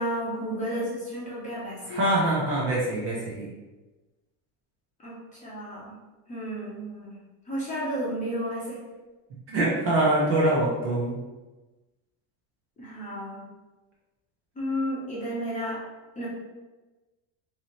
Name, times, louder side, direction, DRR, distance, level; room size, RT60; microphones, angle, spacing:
voice 1, 0.0-2.0 5.0-5.1 5.4-5.9 6.3-7.1 7.5-8.8 12.8-13.4 14.6-15.8 16.2-16.3, equal, 15° left, -7 dB, 0.8 m, -32 dB
voice 2, 1.9-3.5 9.5-11.2, right 1 dB, 30° right, -5 dB, 0.6 m, -24 dB
3.8 x 2.8 x 3.0 m, 1.2 s
cardioid pair, 175°, 46 cm